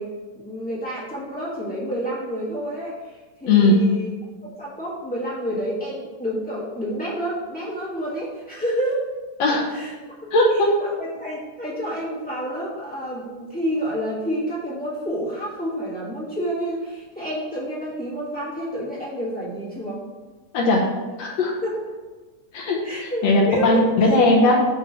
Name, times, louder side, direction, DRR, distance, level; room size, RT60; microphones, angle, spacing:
voice 1, 0.0-4.1 4.4-9.0 9.7-9.9 10.3-10.4 10.8-20.0 21.6-21.8 22.8-24.0, equal, 5° left, -8 dB, 0.7 m, -29 dB
voice 2, 3.5-3.9 9.4-9.7 10.3-10.5 20.5-20.9 21.2-21.5 22.5-24.7, left 2 dB, 70° left, 0 dB, 1.9 m, -18 dB
8.0 x 3.2 x 5.8 m, 1.3 s
omnidirectional pair, 3.6 m